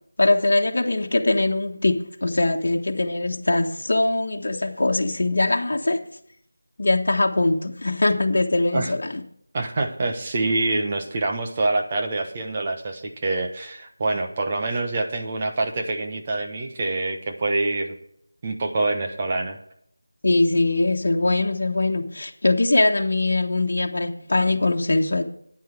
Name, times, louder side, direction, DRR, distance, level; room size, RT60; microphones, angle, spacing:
voice 1, 0.2-6.0 6.8-9.2 20.2-25.2, left 2 dB, 60° left, 2 dB, 1.4 m, -22 dB
voice 2, 9.5-17.9 18.4-19.6, right 2 dB, 20° right, 3 dB, 1.1 m, -26 dB
9.7 x 9.4 x 4.8 m, 0.67 s
figure-of-eight pair, 175°, 0 cm